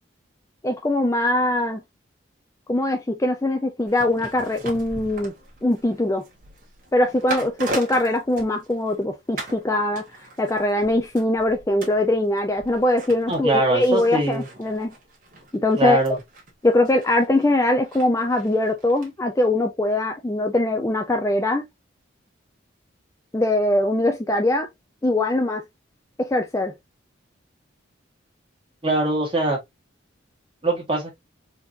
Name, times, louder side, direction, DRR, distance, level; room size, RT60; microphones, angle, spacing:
voice 1, 0.6-1.8 2.7-5.3 5.6-6.2 6.9-10.0 10.4-14.9 15.5-16.0 16.6-21.6 23.3-24.7 25.0-25.6 26.2-26.7, left 1 dB, 15° left, 0.4 m, -22 dB
sound 1, 3.9-9.0 9.4-9.6 10.0-19.1 19.4-19.5, right 1 dB, 45° right, 1.4 m, -39 dB
voice 2, 13.3-14.5 15.8-16.2 28.8-29.6 30.6-31.1, right 2 dB, 25° right, 1.6 m, -22 dB
4.3 x 2.9 x 2.6 m
head